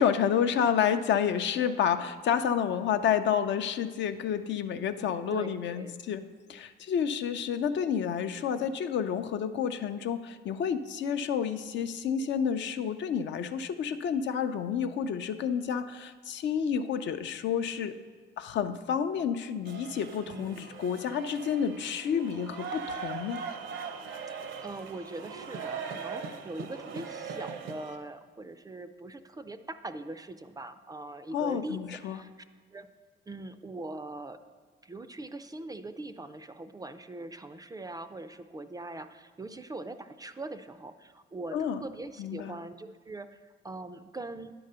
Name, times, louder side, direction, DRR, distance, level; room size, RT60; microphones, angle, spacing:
voice 1, 0.0-17.9 18.4-23.4 31.3-32.2 41.5-41.8 42.2-42.6, left 8 dB, 65° left, 9 dB, 0.5 m, -29 dB
voice 2, 5.3-5.9 20.3-20.8 24.3-32.3 32.7-32.9 33.3-34.4 34.8-44.5, right 2 dB, 20° right, 10 dB, 0.3 m, -42 dB
sound 1, 19.7-28.0, right 5 dB, 75° right, 0.7 m, -40 dB
9.9 x 3.9 x 5.4 m, 1.5 s
cardioid pair, 90°, 20 cm